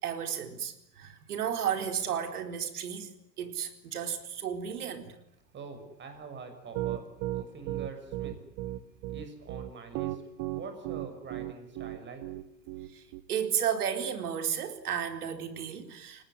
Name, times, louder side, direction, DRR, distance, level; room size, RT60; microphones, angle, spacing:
voice 1, 0.0-3.1 3.4-5.1 12.9-13.0 13.3-16.2, right 8 dB, 60° right, 7 dB, 4.5 m, -33 dB
voice 2, 5.5-7.1 7.3-8.3 9.1-10.2 10.5-12.2, right 4 dB, 20° right, 7 dB, 6.7 m, -44 dB
Piano, 6.7-13.2, right 16 dB, 40° right, 2.0 m, -35 dB
29.5 x 19.0 x 9.8 m, 0.75 s
figure-of-eight pair, 100°, 49 cm